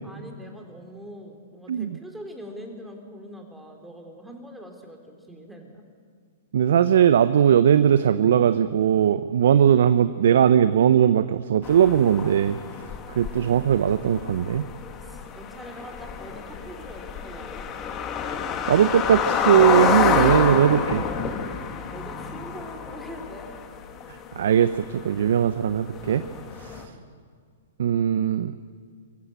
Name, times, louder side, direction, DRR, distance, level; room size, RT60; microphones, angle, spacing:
voice 1, 0.0-5.8 15.0-17.7 21.7-23.5 26.9-27.1, equal, 5° right, 2 dB, 3.5 m, -42 dB
voice 2, 6.5-12.6 13.2-14.7 18.7-21.1 24.4-26.3 26.6-26.8 27.8-28.5, right 9 dB, 70° right, 12 dB, 0.7 m, -19 dB
sound 1, 11.6-26.9, left 7 dB, 30° left, 1.8 m, -28 dB
24.0 x 14.5 x 8.9 m, 2.1 s
hypercardioid pair, 120°, 0 cm